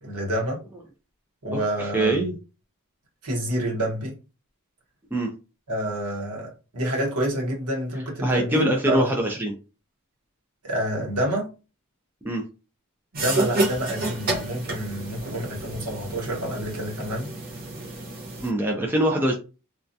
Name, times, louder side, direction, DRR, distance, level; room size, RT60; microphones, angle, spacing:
voice 1, 0.0-0.6 1.4-2.2 3.2-4.2 5.7-9.1 10.6-11.5 13.1-17.3, right 1 dB, 90° right, 1.1 m, -28 dB
voice 2, 1.8-2.3 5.1-5.3 8.2-9.5 12.2-12.4 18.4-19.3, right 1 dB, 10° right, 0.4 m, -23 dB
sound 1, 13.1-18.5, right 2 dB, 40° right, 0.7 m, -30 dB
2.3 x 2.2 x 2.6 m
head